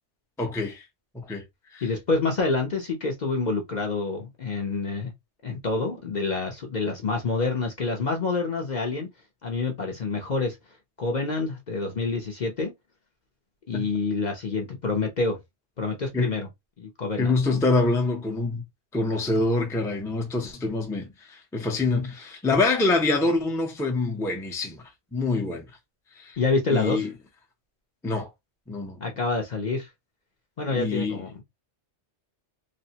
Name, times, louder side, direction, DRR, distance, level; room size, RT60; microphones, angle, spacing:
voice 1, 0.4-0.8 1.1-1.4 1.7-1.8 13.7-13.9 16.1-16.3 17.2-18.6 18.9-24.8 25.1-25.7 26.1-26.4 26.7-27.1 28.0-28.3 28.7-29.0 30.7-31.2, left 3 dB, 5° left, 0.4 m, -25 dB
voice 2, 1.8-5.1 5.4-9.1 9.4-10.6 11.0-12.7 13.7-15.4 15.8-16.5 16.8-17.6 26.4-27.1 29.0-29.9 30.6-31.4, left 3 dB, 50° left, 0.6 m, -27 dB
3.3 x 2.0 x 2.7 m
omnidirectional pair, 1.2 m